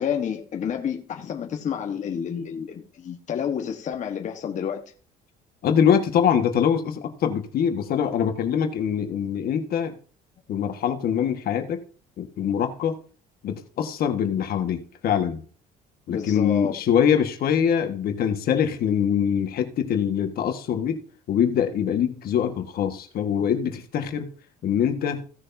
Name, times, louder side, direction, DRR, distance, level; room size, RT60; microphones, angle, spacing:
voice 1, 0.0-4.8 16.1-16.7, left 8 dB, 45° left, 1.4 m, -29 dB
voice 2, 5.6-9.9 10.5-11.8 12.2-13.0 13.4-15.4 16.1-21.0 21.3-24.3 24.6-25.2, left 8 dB, 65° left, 1.6 m, -23 dB
16.5 x 6.4 x 2.7 m
cardioid pair, 110°, 17 cm